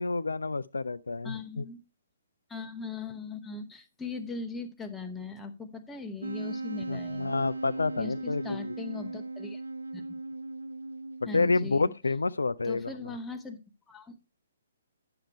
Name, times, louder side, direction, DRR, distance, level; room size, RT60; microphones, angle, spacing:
voice 1, 0.0-1.6 6.9-8.7 11.3-13.1, left 3 dB, 70° left, 0.4 m, -29 dB
voice 2, 1.2-1.8 2.5-7.4 8.0-9.6 9.9-10.0 11.3-11.9 12.6-13.6 13.9-14.2, left 4 dB, 10° left, 0.9 m, -39 dB
Wind instrument woodwind instrument, 6.2-11.9, right 2 dB, 75° right, 0.4 m, -38 dB
10.0 x 6.8 x 4.5 m
figure-of-eight pair, 125°, 0 cm